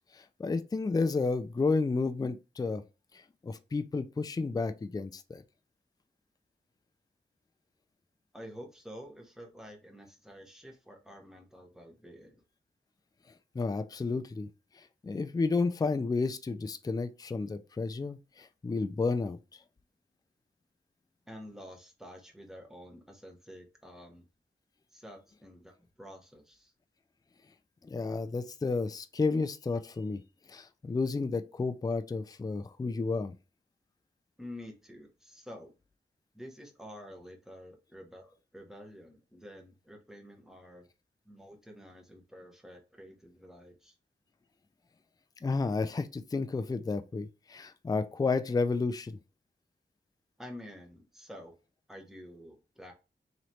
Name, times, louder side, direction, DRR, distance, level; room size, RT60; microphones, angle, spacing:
voice 1, 0.1-2.8 3.1-5.4 13.5-14.5 14.7-19.4 27.8-30.2 30.5-33.3 45.4-49.2, left 4 dB, 20° left, 0.4 m, -31 dB
voice 2, 8.3-12.4 21.3-24.3 24.9-26.7 34.4-35.7 36.3-40.9 41.2-44.0 50.4-51.5 51.9-52.9, equal, 5° right, 1.2 m, -49 dB
3.1 x 3.0 x 4.1 m
wide cardioid pair, 80°, 18 cm